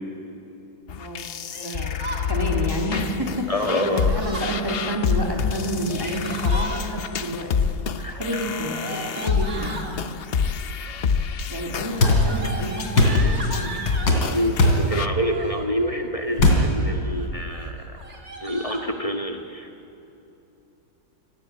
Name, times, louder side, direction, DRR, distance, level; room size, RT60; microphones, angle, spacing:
sound 1, 0.9-15.1, left 6 dB, 60° left, 0.6 m, -27 dB
voice 1, 1.0-7.5 8.1-9.8 11.5-13.7, equal, 10° right, 0 dB, 2.8 m, -30 dB
Yell, 1.5-2.3 3.7-4.5 5.7-6.8 8.1-9.9 10.8-11.2 11.5-14.2 15.1-15.7 16.2-16.7 17.1-17.3 17.5-17.6 18.0-18.9, right 2 dB, 40° right, 2.6 m, -36 dB
voice 2, 3.5-4.1 8.0-8.1 8.9-9.0 14.3-17.8 18.4-19.7, equal, 20° left, 4 dB, 1.5 m, -27 dB
sound 2, 12.0-12.2 13.0-13.2 14.1-14.2 14.6-14.8 16.4-16.6, left 2 dB, 90° left, 3.8 m, -16 dB
27.5 x 17.5 x 8.9 m, 2.8 s
omnidirectional pair, 1.9 m